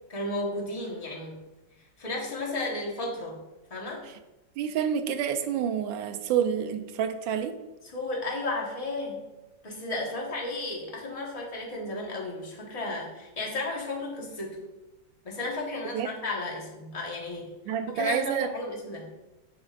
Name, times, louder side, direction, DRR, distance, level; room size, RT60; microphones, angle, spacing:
voice 1, 0.1-1.4 2.0-3.4 3.7-4.0 7.8-9.2 9.6-14.6 15.2-17.5 17.9-19.1, left 2 dB, 25° left, -2 dB, 1.1 m, -33 dB
voice 2, 4.6-7.6 15.9-16.1 17.7-18.5, right 8 dB, 85° right, 7 dB, 1.3 m, -28 dB
8.7 x 5.3 x 2.4 m, 1.0 s
omnidirectional pair, 2.0 m